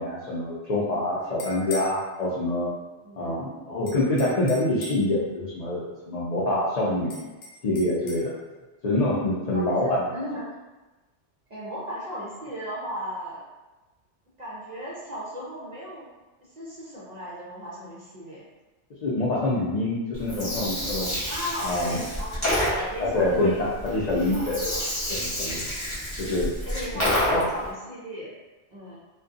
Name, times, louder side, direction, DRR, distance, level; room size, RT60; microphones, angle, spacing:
voice 1, 0.0-2.7 3.2-7.2 7.6-8.3 8.8-10.1 19.0-21.2 21.6-22.0 23.0-24.6 25.1-25.7 26.2-26.5 27.0-27.4, left 1 dB, 65° left, -7 dB, 0.4 m, -26 dB
sound 1, 1.2-2.0 3.9-5.1 7.1-8.2, left 2 dB, 85° left, 0.9 m, -40 dB
voice 2, 9.5-10.4 11.5-13.5 14.4-16.1 16.6-18.4 21.3-24.8 26.6-28.3 28.7-29.0, equal, 50° right, -7 dB, 0.5 m, -36 dB
Gurgling, 20.1-27.7, left 1 dB, 15° left, 0.7 m, -29 dB
2.5 x 2.2 x 2.4 m, 1.1 s
omnidirectional pair, 1.2 m